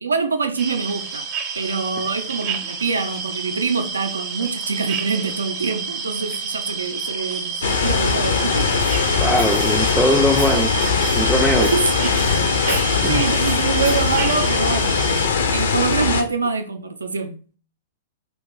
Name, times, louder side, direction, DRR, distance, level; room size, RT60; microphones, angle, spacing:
voice 1, 0.0-8.8 11.6-12.3 12.6-15.0 15.3-17.4, right 4 dB, 75° right, 0.4 m, -25 dB
sound 1, 0.6-15.3, right 5 dB, 40° right, 0.7 m, -29 dB
sound 2, 7.6-16.2, left 5 dB, 65° left, 0.5 m, -20 dB
Walk footsteps, 7.7-16.0, equal, 90° left, 1.4 m, -37 dB
voice 2, 9.2-10.7 11.2-11.7 13.0-13.2, equal, ahead, 0.3 m, -20 dB
2.9 x 2.5 x 3.6 m
figure-of-eight pair, 105°, 0 cm